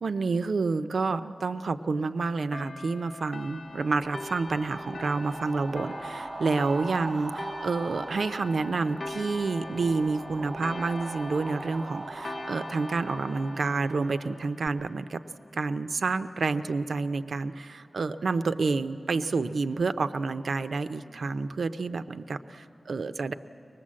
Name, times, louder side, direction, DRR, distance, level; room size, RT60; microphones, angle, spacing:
voice 1, 0.0-15.2 15.5-23.3, right 4 dB, 85° right, 10 dB, 0.6 m, -29 dB
sound 1, 2.5-15.6, left 2 dB, 60° left, 0.5 m, -43 dB
sound 2, 3.5-14.7, right 2 dB, 40° right, 0.6 m, -41 dB
23.5 x 20.0 x 7.5 m, 2.8 s
wide cardioid pair, 95°, 0 cm